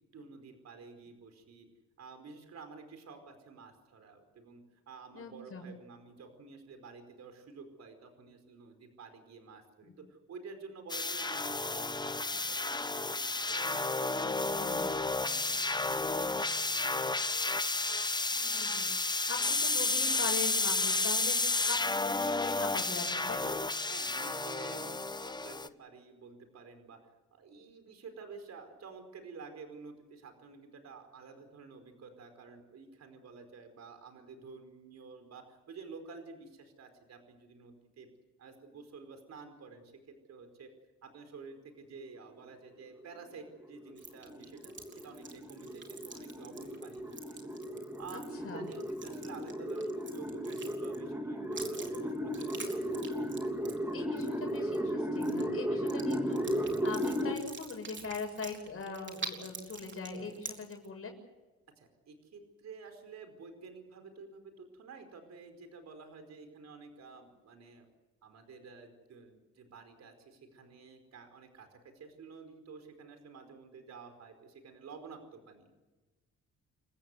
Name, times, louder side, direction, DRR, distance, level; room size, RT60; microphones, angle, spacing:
voice 1, 0.1-1.7 2.0-12.2 12.5-17.0 17.3-17.7 23.9-27.0 27.3-38.1 38.4-40.7 41.0-47.5 48.0-52.8 61.8-67.8 68.2-75.7, right 4 dB, 60° right, 6 dB, 4.8 m, -51 dB
voice 2, 5.1-5.6 9.8-9.9 14.2-14.9 18.3-23.6 48.1-48.6 53.9-61.1, left 4 dB, 50° left, 2 dB, 6.8 m, -42 dB
sound 1, 10.9-25.7, left 3 dB, 15° left, 0.9 m, -32 dB
sound 2, 43.0-57.3, equal, 10° right, 3.4 m, -35 dB
sound 3, 44.0-51.1 51.5-54.9 55.1-55.4 55.9-60.9, right 4 dB, 40° right, 3.7 m, -46 dB
29.5 x 15.0 x 8.1 m, 1.2 s
cardioid pair, 90°, 30 cm